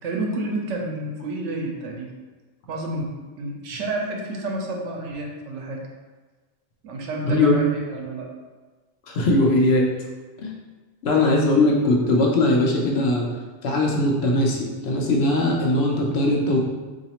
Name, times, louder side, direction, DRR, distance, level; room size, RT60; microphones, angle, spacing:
voice 1, 0.0-2.2 2.7-3.1 3.4-5.8 6.8-8.3, right 2 dB, 80° right, 0 dB, 1.0 m, -30 dB
voice 2, 7.2-7.6 9.1-9.9 10.4-10.5 11.0-13.3 13.6-16.6, left 2 dB, 65° left, -1 dB, 0.8 m, -20 dB
3.9 x 2.7 x 2.9 m, 1.3 s
omnidirectional pair, 1.2 m